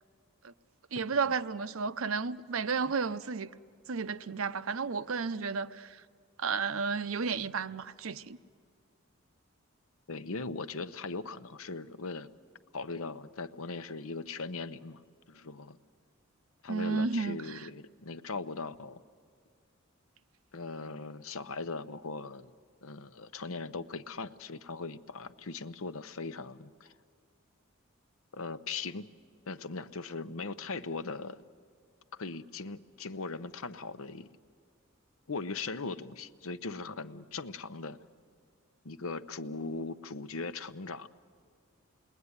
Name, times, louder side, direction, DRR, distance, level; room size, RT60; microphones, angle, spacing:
voice 1, 0.9-3.5 3.9-6.0 6.4-8.4 16.7-17.6, right 5 dB, 75° right, 0.7 m, -32 dB
voice 2, 10.1-12.3 12.7-15.0 15.3-15.8 16.6-19.0 20.5-22.5 22.8-26.9 28.3-29.1 29.5-31.4 32.1-34.3 35.3-38.0 38.8-41.1, left 4 dB, 80° left, 0.8 m, -39 dB
28.5 x 21.0 x 9.7 m
head